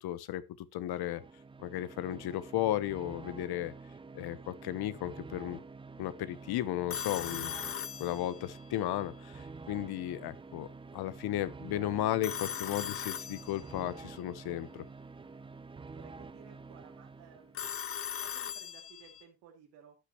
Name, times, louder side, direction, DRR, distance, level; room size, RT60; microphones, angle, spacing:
voice 1, 0.0-1.2 1.6-3.7 4.1-5.6 6.0-7.5 8.0-10.7 10.9-14.8, left 13 dB, 70° left, 1.0 m, -34 dB
sound 1, 0.8-17.7, right 4 dB, 15° right, 0.4 m, -48 dB
Telephone, 6.9-8.7 12.2-13.9 17.5-19.2, left 8 dB, 35° left, 0.8 m, -39 dB
voice 2, 15.9-17.7 18.0-20.0, right 7 dB, 90° right, 2.5 m, -57 dB
11.5 x 8.6 x 2.9 m
cardioid pair, 125°, 39 cm